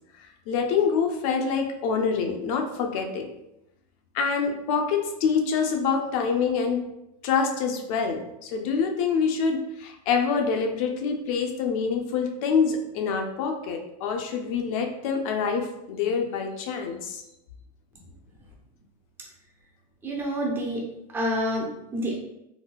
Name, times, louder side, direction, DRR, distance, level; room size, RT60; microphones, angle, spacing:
voice 1, 0.2-3.3 4.1-6.8 7.2-17.2, left 5 dB, 55° left, 4 dB, 0.5 m, -26 dB
voice 2, 20.0-22.1, equal, 10° right, -2 dB, 0.5 m, -28 dB
3.9 x 2.1 x 2.3 m, 0.87 s
supercardioid pair, 160°, 21 cm